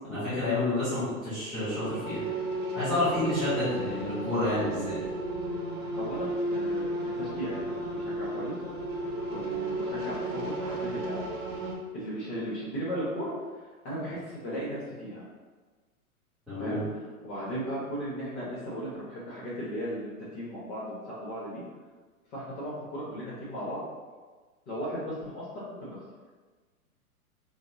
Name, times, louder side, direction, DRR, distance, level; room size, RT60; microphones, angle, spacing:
voice 1, 0.1-2.2 2.7-5.0 16.5-16.8, left 2 dB, ahead, -17 dB, 0.3 m, -29 dB
sound 1, 1.7-11.7, right 1 dB, 60° right, 0.8 m, -33 dB
voice 2, 6.0-8.5 9.3-11.2 11.9-13.3 13.8-15.2 16.6-21.6 22.3-23.8 24.7-26.0, equal, 45° left, -7 dB, 1.0 m, -36 dB
3.9 x 2.0 x 2.5 m, 1.4 s
figure-of-eight pair, 110°, 44 cm